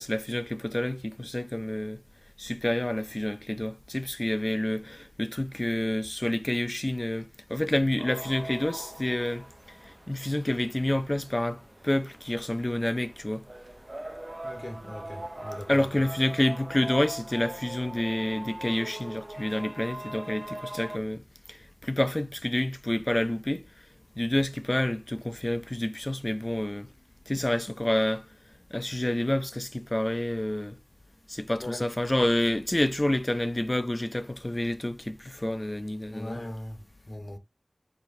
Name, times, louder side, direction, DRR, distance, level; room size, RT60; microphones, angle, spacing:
voice 1, 0.0-2.0 2.4-13.4 15.7-21.2 21.5-23.6 24.2-26.9 27.3-28.3 28.7-30.8 31.3-36.4, left 1 dB, 30° left, 0.4 m, -28 dB
sound 1, 8.0-21.0, right 1 dB, 40° right, 0.5 m, -42 dB
voice 2, 14.4-15.9 31.6-31.9 36.1-37.4, left 1 dB, 55° left, 1.1 m, -39 dB
4.6 x 4.4 x 2.6 m
wide cardioid pair, 45°, 0 cm